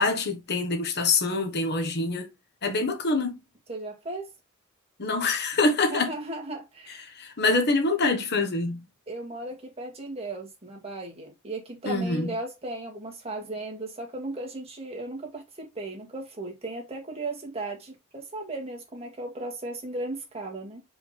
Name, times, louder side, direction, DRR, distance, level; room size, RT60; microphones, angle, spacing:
voice 1, 0.0-2.3 2.6-3.4 5.0-6.1 7.0-8.8 11.8-12.3, left 3 dB, 50° left, 1.2 m, -25 dB
voice 2, 3.7-4.3 5.9-7.1 7.5-7.6 9.1-20.8, right 2 dB, 30° right, 2.3 m, -36 dB
6.1 x 5.0 x 3.3 m
head